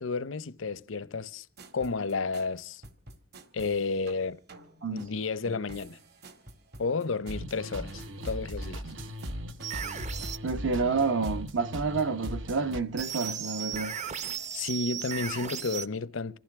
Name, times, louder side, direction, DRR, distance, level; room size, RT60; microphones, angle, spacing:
voice 1, 0.0-1.5 1.7-2.8 3.5-4.4 4.9-6.0 6.8-8.8 14.5-16.4, left 4 dB, 90° left, 0.7 m, -32 dB
sound 1, 1.6-14.5, right 2 dB, 55° right, 2.1 m, -50 dB
sound 2, 7.3-12.8, equal, 85° right, 1.2 m, -38 dB
sound 3, 9.6-10.4 13.0-15.9, right 8 dB, 35° right, 0.7 m, -36 dB
voice 2, 10.4-13.9, right 4 dB, 70° right, 1.0 m, -29 dB
26.5 x 15.0 x 3.6 m
head